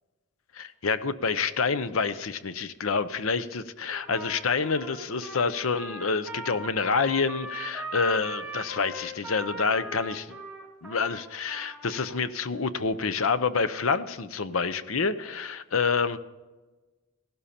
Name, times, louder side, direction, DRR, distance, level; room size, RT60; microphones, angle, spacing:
voice 1, 0.5-10.4 10.8-16.2, left 5 dB, 75° left, 13 dB, 0.8 m, -28 dB
Trumpet, 3.9-12.2, right 1 dB, 5° right, 4.6 m, -40 dB
15.5 x 12.5 x 4.3 m, 1.2 s
head